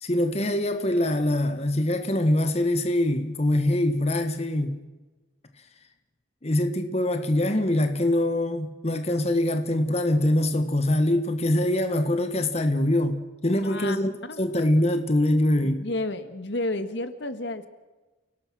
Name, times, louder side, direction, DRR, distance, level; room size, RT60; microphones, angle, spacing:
voice 1, 0.0-4.8 6.4-14.1 14.4-15.9, left 1 dB, 35° left, 1.4 m, -24 dB
voice 2, 13.6-14.0 14.2-14.4 15.6-17.7, left 2 dB, 65° left, 1.6 m, -31 dB
29.5 x 18.0 x 6.2 m
head